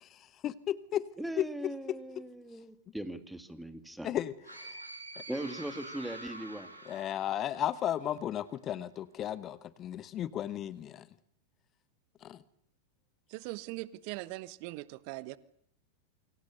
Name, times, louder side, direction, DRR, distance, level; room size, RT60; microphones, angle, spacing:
voice 1, 0.0-1.1 1.4-1.5 4.0-4.8 6.9-11.1 12.2-12.4, left 11 dB, 30° left, 17 dB, 1.1 m, -35 dB
voice 2, 1.2-4.1 5.3-6.7, right 1 dB, 5° right, 11 dB, 2.6 m, -39 dB
sound 1, 4.4-8.1, right 2 dB, 80° right, 6.8 m, -47 dB
voice 3, 13.3-15.4, right 19 dB, 45° right, 19 dB, 1.1 m, -41 dB
28.5 x 25.0 x 6.8 m, 0.68 s
figure-of-eight pair, 90°, 0 cm